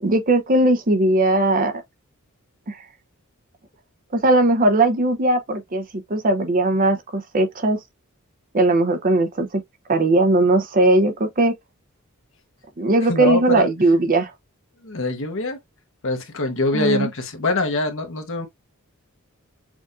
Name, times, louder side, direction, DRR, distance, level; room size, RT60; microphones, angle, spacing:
voice 1, 0.0-1.7 2.7-2.8 4.1-7.8 8.5-9.6 9.9-11.5 12.8-14.3 16.7-17.1, right 2 dB, 40° right, 0.7 m, -19 dB
voice 2, 13.1-13.7 14.8-15.6 16.0-18.5, left 2 dB, 60° left, 1.0 m, -23 dB
6.1 x 2.5 x 2.4 m
head